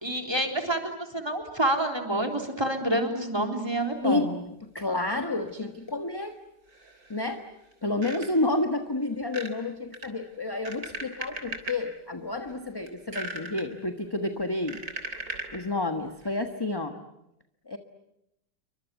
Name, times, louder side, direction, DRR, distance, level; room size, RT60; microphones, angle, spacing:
voice 1, 0.0-0.8 1.1-4.3, right 1 dB, 15° right, 3 dB, 3.6 m, -27 dB
voice 2, 4.7-6.4 7.1-7.4 7.8-14.8 15.5-17.0 17.7-17.8, left 2 dB, 15° left, 6 dB, 1.2 m, -30 dB
sound 1, 5.5-5.6 5.9-6.0 6.7-7.4 7.7-8.5 9.2-9.5 9.9-11.8 12.3-12.5 12.9-13.6 14.3-15.7 16.2-16.4, right 2 dB, 50° right, 3.9 m, -38 dB
29.0 x 24.5 x 8.2 m, 0.84 s
omnidirectional pair, 1.9 m